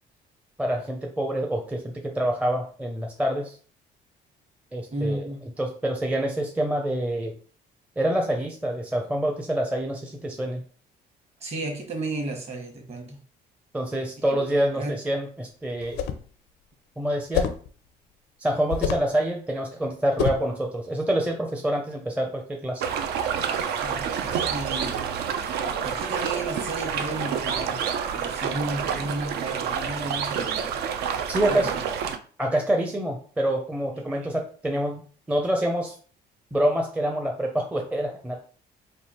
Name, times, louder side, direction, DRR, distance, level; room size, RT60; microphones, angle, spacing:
voice 1, 0.6-3.5 4.7-5.3 5.6-7.3 8.0-10.6 13.7-16.0 17.0-17.5 18.4-22.8 31.3-31.7 32.4-35.0 35.3-36.0 36.5-38.4, right 1 dB, 10° right, 2 dB, 0.5 m, -26 dB
voice 2, 4.9-5.4 11.4-13.2 14.3-14.4 14.7-15.0 23.8-25.1 25.8-27.8 28.1-30.8 31.5-31.7 33.9-34.3, right 2 dB, 40° right, 2 dB, 1.2 m, -33 dB
sound 1, 15.8-16.3 17.3-17.7 18.7-19.1 20.2-20.5, left 8 dB, 80° left, 0.5 m, -27 dB
sound 2, 22.8-32.2, right 7 dB, 75° right, 0.5 m, -28 dB
3.3 x 2.4 x 4.2 m, 0.43 s
cardioid pair, 110°, 17 cm